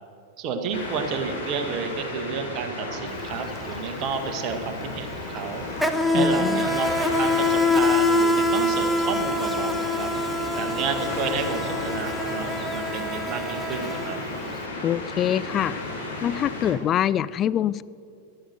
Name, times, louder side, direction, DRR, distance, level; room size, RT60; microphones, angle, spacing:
voice 1, 0.4-5.6 6.1-10.1 10.5-14.2, right 5 dB, 35° right, 6 dB, 1.6 m, -31 dB
sound 1, 0.7-16.7, left 2 dB, 70° left, 3.3 m, -34 dB
Insect, 3.1-3.3 3.6-14.6, left 2 dB, ahead, 0.9 m, -25 dB
voice 2, 6.1-6.8 14.8-15.8 16.2-17.8, left 10 dB, 30° left, 17 dB, 0.4 m, -25 dB
13.5 x 12.5 x 6.6 m, 2.6 s
figure-of-eight pair, 90°, 0 cm